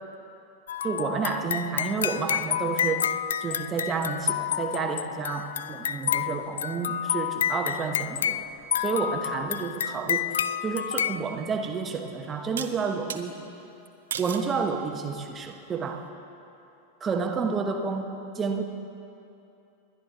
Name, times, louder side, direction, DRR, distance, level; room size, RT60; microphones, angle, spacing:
sound 1, 0.7-11.2, left 9 dB, 65° left, 0.3 m, -29 dB
voice 1, 0.8-3.1 3.4-8.5 8.8-13.4 14.2-16.1 17.0-18.6, right 5 dB, 20° right, 4 dB, 1.1 m, -30 dB
sound 2, 11.2-11.3 12.6-13.2 14.1-14.5 15.1-15.6, right 8 dB, 65° right, 0.7 m, -35 dB
21.0 x 10.5 x 4.1 m, 2.7 s
figure-of-eight pair, 90°, 0 cm